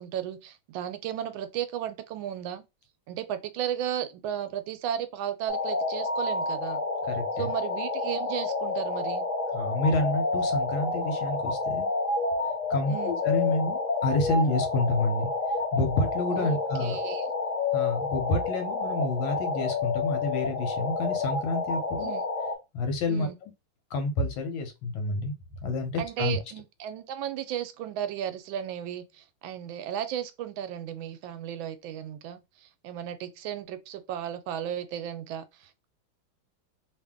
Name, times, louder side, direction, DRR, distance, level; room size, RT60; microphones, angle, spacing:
voice 1, 0.0-2.6 3.1-6.8 7.4-9.3 12.9-13.2 16.4-17.2 22.0-22.2 23.1-23.4 26.0-35.9, right 10 dB, 80° right, 1.3 m, -34 dB
sound 1, 5.5-22.6, left 3 dB, 45° left, 1.3 m, -29 dB
voice 2, 7.1-7.5 9.5-11.9 12.7-15.3 15.7-17.0 17.7-22.1 22.7-23.3 23.9-25.3 25.6-26.4, left 2 dB, 85° left, 1.6 m, -28 dB
3.1 x 2.6 x 3.5 m
omnidirectional pair, 2.1 m